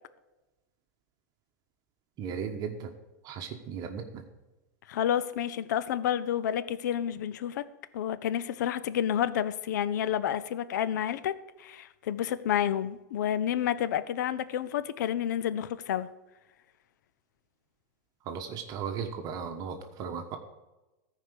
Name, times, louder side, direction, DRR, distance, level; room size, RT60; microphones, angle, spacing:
voice 1, 2.2-2.9 3.2-4.2 18.2-20.4, right 6 dB, 40° right, 1.3 m, -36 dB
voice 2, 4.9-7.6 7.9-16.1, left 10 dB, 75° left, 0.7 m, -30 dB
14.0 x 5.0 x 6.8 m
hypercardioid pair, 120°, 10 cm